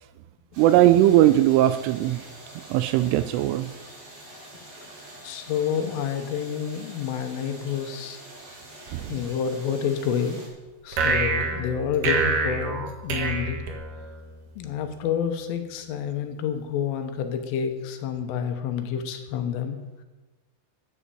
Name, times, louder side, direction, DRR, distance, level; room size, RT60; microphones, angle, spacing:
sound 1, 0.5-10.5, right 1 dB, 50° right, 6.1 m, -45 dB
voice 1, 0.6-2.2 2.7-3.7 8.9-9.2, right 13 dB, 85° right, 12 dB, 2.9 m, -19 dB
voice 2, 5.2-8.2 9.1-10.4 10.8-13.6 14.6-19.8, left 7 dB, 80° left, 6 dB, 3.4 m, -29 dB
sound 2, 10.9-14.3, right 4 dB, 65° right, 2.1 m, -26 dB
11.0 x 9.9 x 7.0 m, 1.2 s
omnidirectional pair, 6.0 m